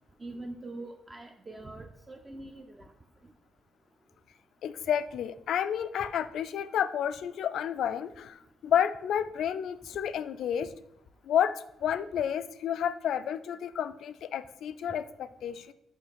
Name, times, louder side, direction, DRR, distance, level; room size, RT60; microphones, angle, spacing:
voice 1, 0.2-2.9 10.6-10.7, right 2 dB, 15° right, 3 dB, 0.4 m, -43 dB
voice 2, 4.6-10.7 11.2-15.7, left 9 dB, 65° left, 14 dB, 0.3 m, -30 dB
6.7 x 3.1 x 5.0 m, 0.83 s
cardioid pair, 155°, 0 cm